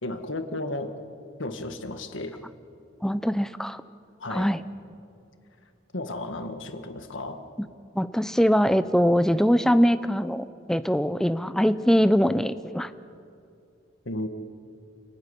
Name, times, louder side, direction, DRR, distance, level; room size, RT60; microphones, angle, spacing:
voice 1, 0.0-1.0 1.4-2.4 4.2-4.5 5.9-7.5 14.1-14.3, left 2 dB, 85° left, 7 dB, 1.8 m, -33 dB
voice 2, 3.0-3.8 4.3-4.6 7.6-7.7 7.9-12.9, equal, 5° left, 12 dB, 0.6 m, -22 dB
28.0 x 15.5 x 9.9 m, 2.5 s
head